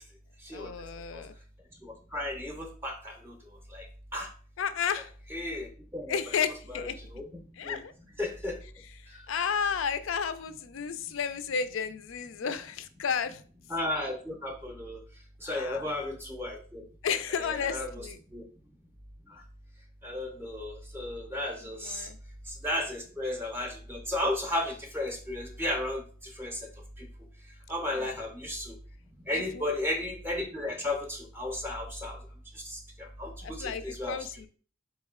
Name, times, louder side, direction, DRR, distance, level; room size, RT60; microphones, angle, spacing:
voice 1, 0.5-1.4 4.6-5.1 6.1-7.0 7.6-7.9 9.3-13.4 15.5-15.9 17.0-18.2 21.6-22.2 27.9-28.2 29.3-29.7 33.4-34.5, left 6 dB, 70° left, 12 dB, 0.4 m, -32 dB
voice 2, 1.8-3.3 3.7-3.8 4.1-4.3 5.3-5.7 5.9-6.2 6.7-7.8 8.2-8.6 13.7-15.0 15.4-16.8 17.4-18.1 18.3-18.4 20.0-22.1 22.6-26.0 26.4-26.6 27.7-28.7 29.3-32.2 32.7-32.8 33.2-34.2, left 1 dB, 10° right, 1 dB, 0.6 m, -34 dB
4.1 x 3.1 x 3.6 m, 0.42 s
head